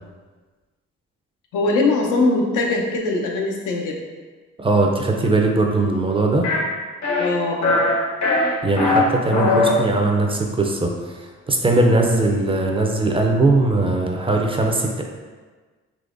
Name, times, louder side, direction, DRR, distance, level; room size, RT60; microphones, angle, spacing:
voice 1, 1.5-4.0 7.2-7.9, left 2 dB, 90° left, 0 dB, 0.6 m, -21 dB
voice 2, 4.6-6.5 8.6-15.0, right 2 dB, 20° right, 1 dB, 0.4 m, -20 dB
sound 1, 6.4-6.6 7.0-7.3 7.6-7.9 8.2-9.0 9.3-9.7, left 3 dB, 65° left, 0.9 m, -19 dB
3.8 x 2.9 x 2.5 m, 1.4 s
cardioid pair, 90°, 30 cm